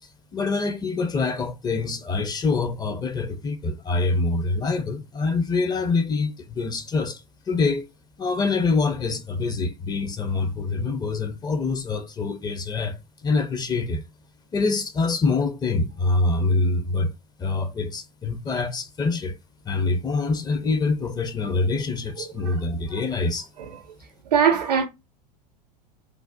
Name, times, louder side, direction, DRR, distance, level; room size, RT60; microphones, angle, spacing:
voice 1, 0.3-7.9 8.2-14.0 14.5-17.1 17.4-19.4 19.6-23.5, left 3 dB, 20° left, 0.5 m, -25 dB
voice 2, 22.2-22.6 22.9-23.0 23.6-23.8 24.3-24.8, right 7 dB, 80° right, 0.5 m, -22 dB
3.2 x 2.1 x 2.5 m
hypercardioid pair, 85°, 21 cm